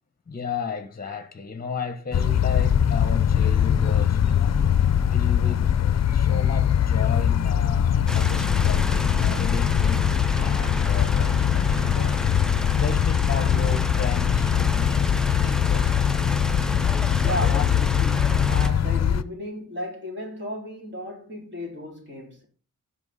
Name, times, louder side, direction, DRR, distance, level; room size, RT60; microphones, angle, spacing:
voice 1, 0.3-4.5 5.1-12.2 12.8-14.9 15.4-16.2 17.5-17.7, left 4 dB, 30° left, 1.1 m, -34 dB
sound 1, 2.1-19.2, left 8 dB, 55° left, 0.6 m, -21 dB
sound 2, 8.1-18.7, left 1 dB, ahead, 0.5 m, -33 dB
voice 2, 17.2-22.5, equal, 35° right, 3.6 m, -35 dB
15.0 x 5.8 x 4.2 m
wide cardioid pair, 95°, 31 cm